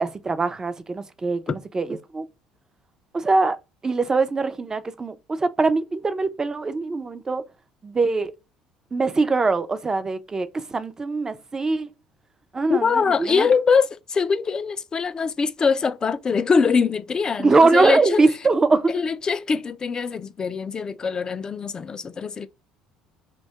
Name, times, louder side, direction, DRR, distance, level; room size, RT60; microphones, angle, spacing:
voice 1, 0.0-2.3 3.1-3.6 3.8-7.4 7.8-8.3 8.9-11.9 12.5-13.5 17.4-18.9, right 3 dB, 25° right, 0.5 m, -22 dB
voice 2, 12.7-18.2 18.9-22.5, left 5 dB, 30° left, 0.3 m, -23 dB
2.7 x 2.2 x 4.0 m
hypercardioid pair, 60°, 2 cm